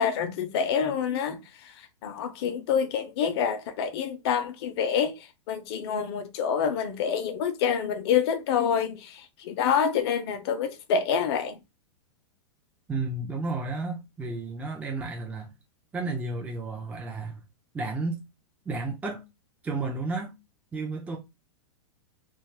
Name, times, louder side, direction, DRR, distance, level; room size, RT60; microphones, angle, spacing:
voice 1, 0.0-1.4 2.0-5.1 5.5-11.6, left 7 dB, 55° left, 0.5 m, -27 dB
voice 2, 12.9-15.5 15.9-17.4 17.7-18.2 18.7-19.2 19.6-20.3 20.7-21.2, right 3 dB, 10° right, 0.5 m, -32 dB
2.5 x 2.3 x 3.1 m
hypercardioid pair, 110°, 16 cm